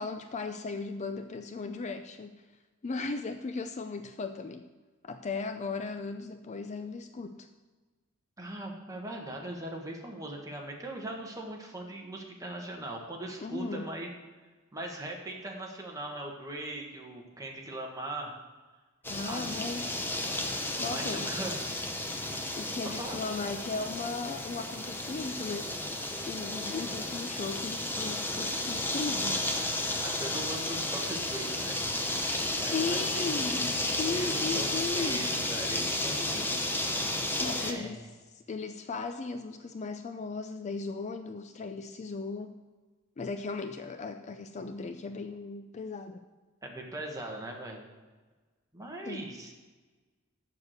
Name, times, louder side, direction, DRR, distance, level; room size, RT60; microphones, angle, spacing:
voice 1, 0.0-2.4 2.8-4.6 5.0-7.5 13.4-13.9 19.1-19.8 20.8-21.3 22.6-25.7 26.3-29.5 32.5-35.3 37.4-38.0 38.5-42.6 43.2-46.2 49.0-49.3, left 4 dB, 35° left, 8 dB, 0.4 m, -36 dB
voice 2, 8.4-14.1 14.7-18.4 19.3-20.0 20.8-21.6 22.9-23.2 26.8-26.9 29.8-33.3 34.1-36.7 37.5-38.1 46.6-47.8 48.7-49.5, right 1 dB, 15° right, 0 dB, 1.5 m, -40 dB
sound 1, 19.0-37.7, left 1 dB, 10° left, 0.8 m, -32 dB
7.2 x 6.7 x 7.8 m, 1.3 s
head